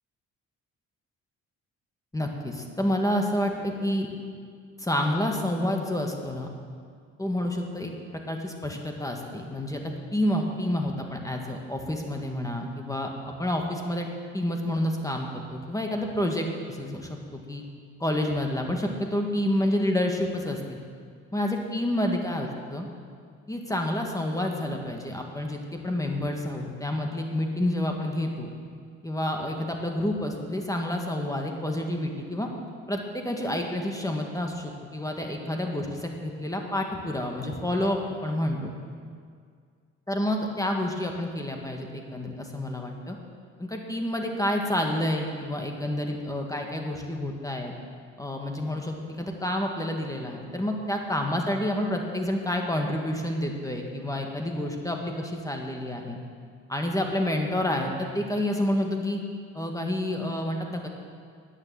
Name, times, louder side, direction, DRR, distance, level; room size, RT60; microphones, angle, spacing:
voice 1, 2.1-4.1 4.8-6.5 7.2-7.9 8.3-14.1 14.3-17.6 18.0-20.8 21.3-22.9 23.5-28.5 29.0-32.5 32.9-38.7 40.1-43.2 43.6-47.7 48.2-56.2 56.7-59.2 59.5-60.9, left 1 dB, 10° left, 2 dB, 1.7 m, -29 dB
10.5 x 9.0 x 7.7 m, 2.1 s
cardioid pair, 90°, 30 cm